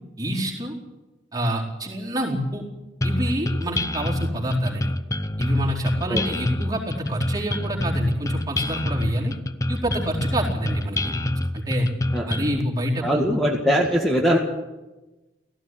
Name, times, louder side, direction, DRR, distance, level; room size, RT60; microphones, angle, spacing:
voice 1, 0.2-0.7 1.3-2.6 3.0-4.9 5.4-9.3 9.7-11.2 11.5-11.9 12.3-13.2, equal, 20° right, -3 dB, 4.3 m, -27 dB
sound 1, 3.0-12.6, left 1 dB, 15° left, 0.6 m, -26 dB
voice 2, 13.0-14.4, equal, ahead, -2 dB, 2.0 m, -21 dB
17.5 x 16.0 x 9.6 m, 1.1 s
head